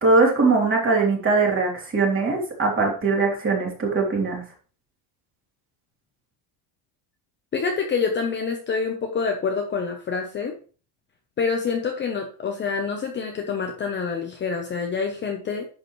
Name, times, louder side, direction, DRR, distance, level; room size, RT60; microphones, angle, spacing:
voice 1, 0.0-4.4, right 3 dB, 25° right, -1 dB, 3.2 m, -21 dB
voice 2, 7.5-10.6 11.4-15.7, left 5 dB, 20° left, 3 dB, 0.9 m, -26 dB
11.0 x 7.6 x 3.2 m, 0.39 s
cardioid pair, 165°, 49 cm